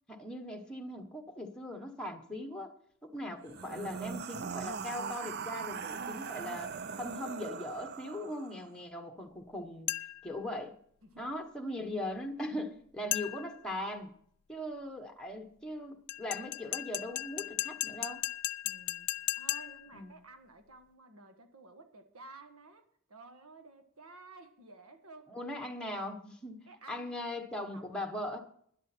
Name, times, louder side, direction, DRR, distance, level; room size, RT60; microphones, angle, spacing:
voice 1, 0.1-2.7 3.0-9.9 10.2-10.7 11.2-14.1 14.5-18.2 19.9-20.2 25.3-28.4, left 1 dB, 5° left, 3 dB, 1.2 m, -40 dB
sound 1, 3.4-8.7, right 6 dB, 50° right, 0.5 m, -40 dB
sound 2, 9.9-10.3 13.1-13.6 16.1-19.9, left 18 dB, 85° left, 0.4 m, -36 dB
voice 2, 18.6-25.4 26.7-27.1 27.7-27.9, right 3 dB, 85° right, 7 dB, 1.5 m, -54 dB
12.0 x 11.0 x 4.4 m, 0.64 s
head